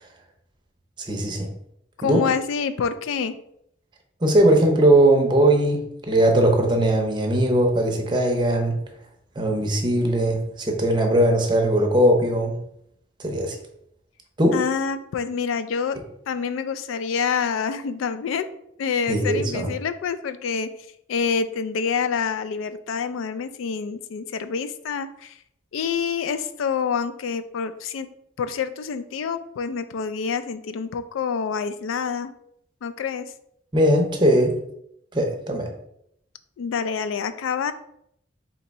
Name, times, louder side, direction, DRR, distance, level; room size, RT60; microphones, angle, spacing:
voice 1, 1.0-1.5 2.0-2.3 4.2-8.8 9.4-12.6 13.2-13.6 14.4-14.6 19.1-19.7 33.7-34.6 35.1-35.7, right 1 dB, 25° right, 2 dB, 0.6 m, -20 dB
voice 2, 2.0-3.4 14.5-16.0 16.3-18.5 18.8-20.7 21.1-25.3 25.7-28.1 28.4-32.3 32.8-33.3 36.6-37.7, left 6 dB, 85° left, 11 dB, 0.3 m, -27 dB
3.4 x 2.8 x 4.1 m, 0.74 s
head